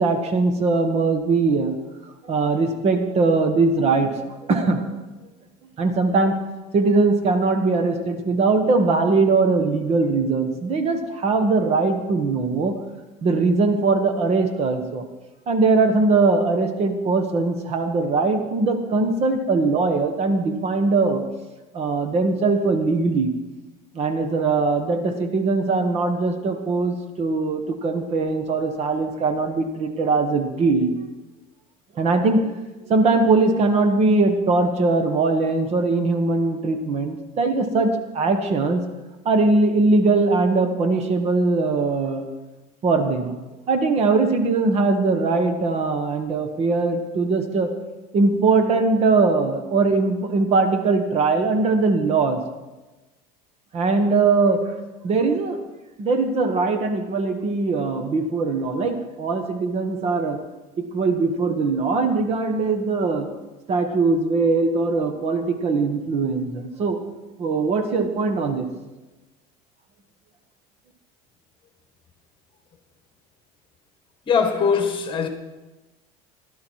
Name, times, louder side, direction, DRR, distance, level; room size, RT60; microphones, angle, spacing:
voice 1, 0.0-1.8 2.2-4.8 5.8-6.4 6.7-12.7 13.2-15.0 15.5-21.2 21.7-23.3 23.9-30.9 32.0-32.5 32.9-38.8 39.2-42.3 42.8-43.4 43.7-47.7 48.1-52.4 53.7-54.6 55.0-55.6 56.0-60.4 60.9-63.3 63.7-67.0 67.4-68.7, right 3 dB, 40° right, 1.4 m, -21 dB
voice 2, 74.3-75.3, left 6 dB, 30° left, 1.8 m, -21 dB
17.5 x 11.5 x 4.7 m
cardioid pair, 140°, 17 cm